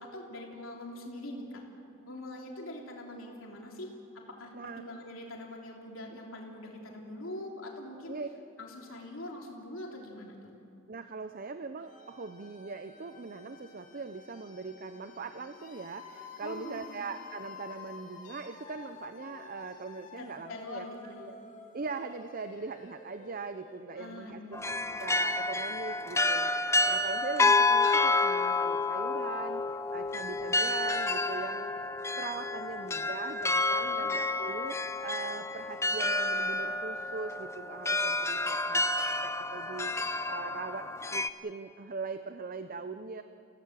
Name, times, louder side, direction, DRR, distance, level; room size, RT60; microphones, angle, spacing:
voice 1, 0.0-1.6 2.0-3.9 4.4-8.1 8.6-10.5 16.4-17.0 20.2-21.2 23.9-24.6 33.8-34.1, left 1 dB, 85° left, -1 dB, 3.3 m, -43 dB
voice 2, 10.9-21.4 21.7-29.6 29.9-31.9 32.2-34.8 35.0-43.2, right 4 dB, 45° right, 9 dB, 0.6 m, -41 dB
sound 1, 11.8-24.6, left 4 dB, 40° left, 2.2 m, -50 dB
sound 2, 24.5-41.3, left 2 dB, 15° left, 0.6 m, -29 dB
30.0 x 16.5 x 7.5 m, 2.6 s
head